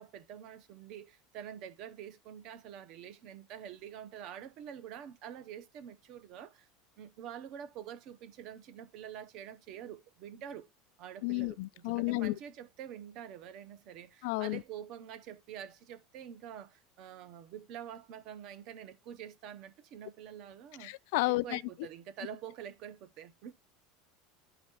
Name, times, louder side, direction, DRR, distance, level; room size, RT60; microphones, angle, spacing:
voice 1, 0.0-6.7 7.0-10.7 11.0-20.9 21.3-23.5, right 9 dB, 40° right, 0.9 m, -47 dB
voice 2, 11.2-12.3 14.2-14.6 20.8-21.6, left 23 dB, 65° left, 0.4 m, -31 dB
12.0 x 4.0 x 3.0 m
cardioid pair, 175°, 0 cm